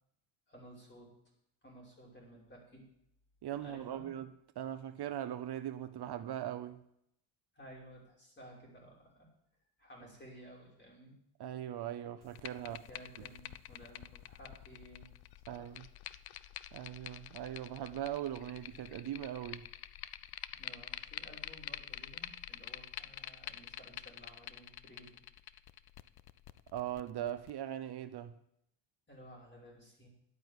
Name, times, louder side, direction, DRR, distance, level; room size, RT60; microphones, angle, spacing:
voice 1, 0.5-1.1 1.6-2.8 3.6-4.1 7.5-9.3 9.8-11.2 12.6-15.1 15.5-15.8 20.5-25.2 29.1-30.1, right 1 dB, 25° left, 5.8 m, -55 dB
voice 2, 3.4-4.3 4.6-6.8 11.4-12.8 15.5-15.9 16.7-19.7 26.7-28.3, right 11 dB, 55° right, 0.8 m, -40 dB
sound 1, 12.2-27.5, left 12 dB, 55° left, 0.7 m, -48 dB
11.0 x 9.1 x 8.2 m
cardioid pair, 115°, 47 cm